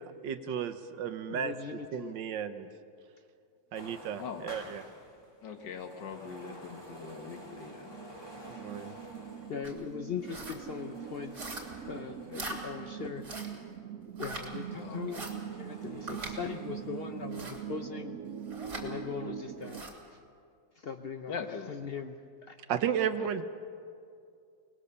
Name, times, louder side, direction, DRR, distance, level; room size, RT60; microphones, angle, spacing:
voice 1, 0.2-1.5 1.9-2.7 3.7-4.8 8.5-8.9 9.3-9.4 22.7-23.4, right 8 dB, 75° right, 10 dB, 1.6 m, -33 dB
voice 2, 1.1-2.1 9.5-11.6 11.9-13.3 14.2-15.3 15.5-18.2 18.8-19.8 20.8-21.3 21.7-22.6, left 6 dB, 90° left, 7 dB, 0.5 m, -40 dB
sound 1, 3.7-13.6 14.2-17.6, equal, 15° left, 2.1 m, -51 dB
voice 3, 5.4-7.9 14.7-15.3 21.3-21.8 23.2-23.4, left 6 dB, 65° left, 6 dB, 1.9 m, -42 dB
sound 2, 6.6-19.8, right 8 dB, 55° right, 1.0 m, -43 dB
sound 3, 9.6-9.8 10.2-10.6 11.3-11.8 12.3-12.6 13.2-13.6 14.2-14.5 15.1-15.3 16.1-16.4 17.3-17.6 18.5-18.9 19.6-20.0, right 2 dB, 40° right, 3.1 m, -41 dB
24.0 x 20.0 x 6.8 m, 2.3 s
omnidirectional pair, 2.1 m